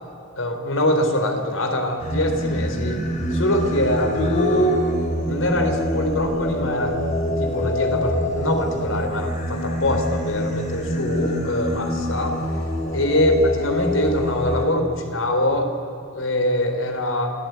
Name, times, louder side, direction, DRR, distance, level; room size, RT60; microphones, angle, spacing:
voice 1, 0.4-3.0 3.3-4.8 5.3-6.9 7.4-12.4 12.9-15.7 16.1-17.3, left 1 dB, 70° left, 5 dB, 4.0 m, -23 dB
Singing, 2.0-14.7, left 1 dB, 35° left, 3.4 m, -26 dB
27.0 x 18.5 x 9.5 m, 2.8 s
head